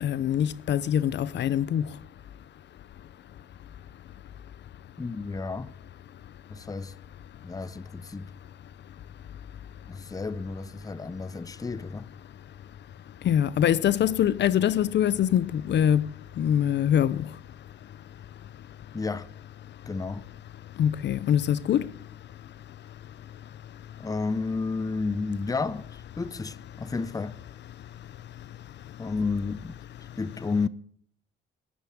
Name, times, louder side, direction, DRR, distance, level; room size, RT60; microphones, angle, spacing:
voice 1, 0.0-2.0 13.2-17.3 20.8-21.9, left 10 dB, 60° left, 0.7 m, -24 dB
voice 2, 5.0-5.7 6.5-6.9 7.4-8.3 9.9-12.1 18.9-19.3 19.9-20.2 24.0-27.4 29.0-30.7, left 4 dB, 20° left, 0.7 m, -31 dB
14.5 x 11.0 x 8.7 m
cardioid pair, 90°, 20 cm